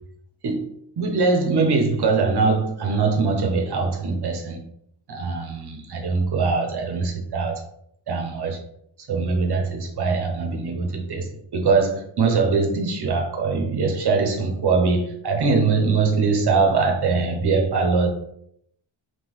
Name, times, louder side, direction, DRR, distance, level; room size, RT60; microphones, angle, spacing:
voice 1, 1.0-4.6 5.1-7.6 8.1-8.6 9.1-18.1, right 4 dB, 55° right, 0.6 m, -22 dB
3.6 x 2.8 x 3.0 m
wide cardioid pair, 175°, 48 cm